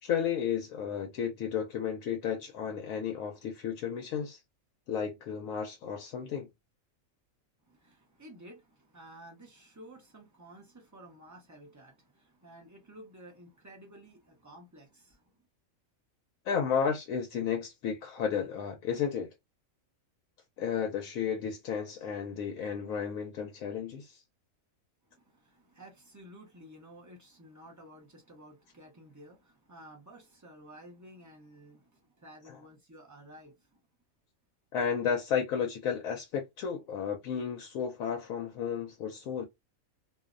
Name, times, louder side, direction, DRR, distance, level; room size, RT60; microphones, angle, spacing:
voice 1, 0.0-4.4 4.9-6.5 16.4-19.3 20.6-24.2 32.4-32.6 34.7-39.4, left 7 dB, 80° left, 1.0 m, -33 dB
voice 2, 7.7-15.2 25.1-33.5, right 1 dB, 20° right, 0.4 m, -53 dB
2.6 x 2.0 x 2.4 m
omnidirectional pair, 1.4 m